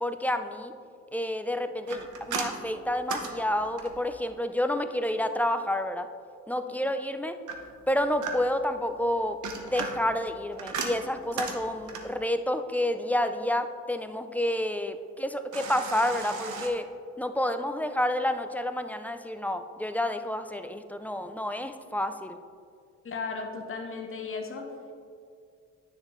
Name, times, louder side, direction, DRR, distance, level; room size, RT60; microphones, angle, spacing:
voice 1, 0.0-0.7 1.1-6.1 6.5-7.4 7.9-9.4 9.6-16.9 17.2-22.4, left 1 dB, 5° left, 8 dB, 0.3 m, -29 dB
sound 1, 1.9-4.1 7.5-8.7 9.2-12.2 15.5-16.7, right 5 dB, 75° right, 0.9 m, -36 dB
voice 2, 23.0-24.7, left 4 dB, 45° left, 3 dB, 1.2 m, -35 dB
9.7 x 6.4 x 3.1 m, 2.2 s
cardioid pair, 90°, 30 cm